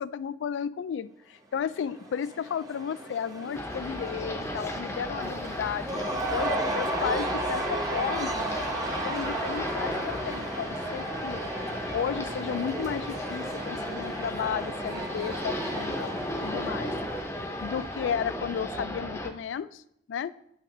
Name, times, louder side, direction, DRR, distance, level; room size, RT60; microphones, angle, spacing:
voice 1, 0.0-8.4 9.0-11.4 11.9-16.9 17.6-19.8 20.1-20.3, left 7 dB, 85° left, 17 dB, 0.3 m, -33 dB
Cheering / Crowd, 1.6-18.5, right 1 dB, 20° right, 0.8 m, -35 dB
sound 1, 3.5-19.3, left 1 dB, 15° left, 0.6 m, -35 dB
Bowed string instrument, 9.5-13.3, equal, 90° right, 1.2 m, -49 dB
8.1 x 5.8 x 3.0 m, 0.76 s
head